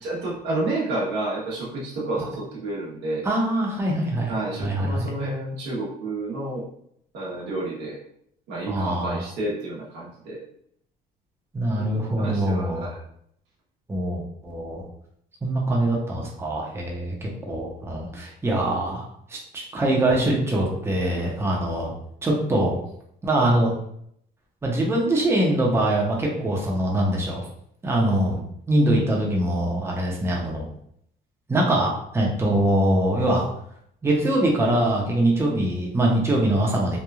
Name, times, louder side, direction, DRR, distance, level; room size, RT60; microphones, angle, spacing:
voice 1, 0.0-3.3 4.3-6.7 7.1-8.0 8.5-10.4 11.9-13.0, right 2 dB, 90° right, -4 dB, 0.9 m, -30 dB
voice 2, 3.2-4.3 4.6-5.1 8.7-9.2 11.5-12.9 13.9-14.8 15.4-21.9 22.2-22.8 23.2-23.7 24.6-27.4 27.8-28.4 28.7-30.7 31.5-33.5 34.0-37.0, right 1 dB, 15° right, -2 dB, 0.6 m, -23 dB
3.0 x 2.2 x 2.3 m, 0.70 s
cardioid pair, 110°, 17 cm